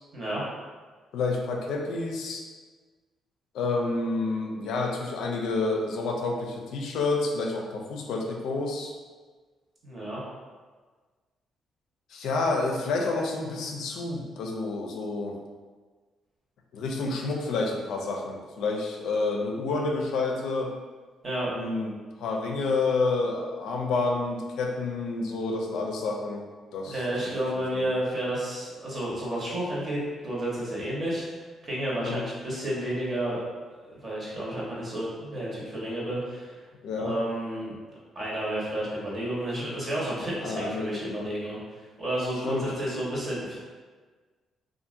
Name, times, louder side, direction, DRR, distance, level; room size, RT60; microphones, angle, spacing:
voice 1, 1.1-2.4 3.5-8.9 12.1-15.4 16.7-20.7 21.6-21.9 22.2-26.4 26.7-27.3 27.7-27.9 32.0-32.2 36.8-37.1 40.4-41.3 42.4-42.6, left 3 dB, 80° left, 1 dB, 0.4 m, -29 dB
voice 2, 9.8-10.2 21.2-21.5 26.8-31.3 31.6-33.4 33.9-36.6 37.0-37.8 38.1-43.6, right 1 dB, 40° right, -6 dB, 1.0 m, -31 dB
2.7 x 2.4 x 2.5 m, 1.4 s
cardioid pair, 90°, 0 cm